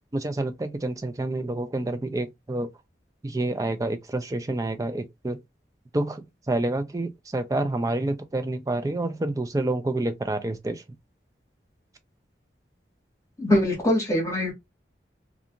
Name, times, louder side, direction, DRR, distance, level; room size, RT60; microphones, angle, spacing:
voice 1, 0.1-2.7 3.2-5.4 5.9-10.8, right 2 dB, 20° right, 0.3 m, -28 dB
voice 2, 13.4-14.5, left 1 dB, 15° left, 1.1 m, -22 dB
2.5 x 2.4 x 2.7 m
head